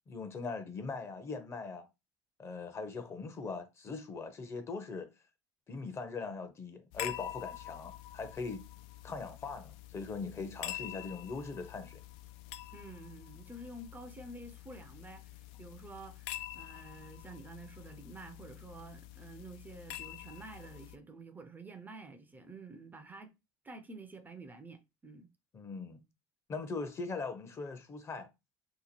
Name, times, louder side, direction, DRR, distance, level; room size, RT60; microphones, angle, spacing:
voice 1, 0.1-1.9 2.4-5.1 5.7-8.6 9.0-12.0 25.5-26.0 26.5-28.3, left 4 dB, 30° left, 0.7 m, -40 dB
sound 1, 6.9-21.0, left 14 dB, 70° left, 0.4 m, -46 dB
voice 2, 12.7-23.3 23.6-25.3, right 2 dB, 20° right, 0.5 m, -49 dB
2.9 x 2.2 x 4.2 m
supercardioid pair, 90°, 9 cm